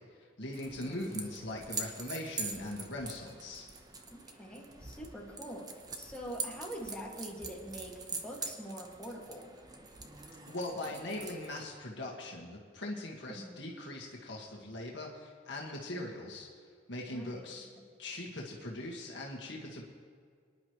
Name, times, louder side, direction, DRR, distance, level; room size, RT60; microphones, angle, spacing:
voice 1, 0.0-3.7 10.5-16.5 16.9-17.7 18.0-19.8, left 1 dB, 70° left, -2 dB, 1.8 m, -41 dB
sound 1, 0.5-11.7, right 4 dB, 20° right, 1.0 m, -44 dB
voice 2, 0.8-1.1 4.1-5.6 6.0-9.5 13.3-13.6 17.1-17.4 17.8-17.9, equal, 5° left, -3 dB, 2.1 m, -44 dB
24.0 x 11.0 x 3.2 m, 2.1 s
head